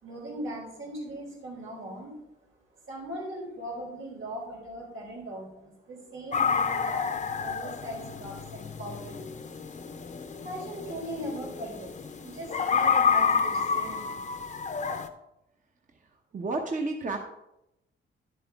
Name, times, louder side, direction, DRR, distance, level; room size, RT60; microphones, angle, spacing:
voice 1, 0.0-2.1 2.9-9.6 10.4-14.2, right 1 dB, 85° right, -4 dB, 4.0 m, -40 dB
sound 1, 6.3-15.1, left 6 dB, 35° left, 0.7 m, -29 dB
voice 2, 16.3-17.2, right 3 dB, 40° right, 3 dB, 0.9 m, -30 dB
10.5 x 7.8 x 3.5 m, 0.87 s
cardioid pair, 120°, 21 cm